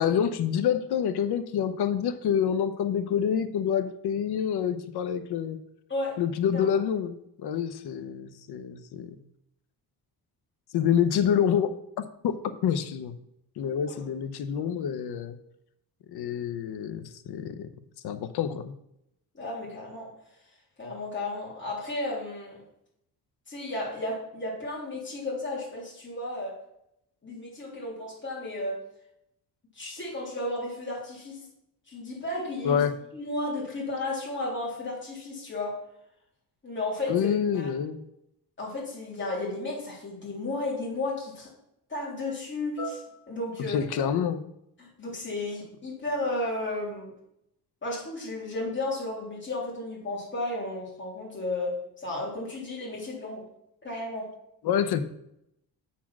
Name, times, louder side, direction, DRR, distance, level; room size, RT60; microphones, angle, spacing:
voice 1, 0.0-5.6 6.2-9.2 10.7-11.7 12.2-13.1 13.6-15.4 16.1-17.7 18.0-18.7 32.6-33.0 37.1-38.0 43.7-44.4 54.6-55.0, left 8 dB, 75° left, 11 dB, 0.8 m, -27 dB
voice 2, 19.3-20.1 20.8-22.6 23.5-26.6 27.2-28.8 29.7-31.5 31.9-32.8 33.1-35.8 36.6-37.3 37.5-37.7 38.6-41.5 41.9-43.8 44.8-47.1 47.8-53.4 53.8-54.3, left 2 dB, 30° left, -4 dB, 3.1 m, -33 dB
7.3 x 4.3 x 5.9 m, 0.79 s
cardioid pair, 130°, 39 cm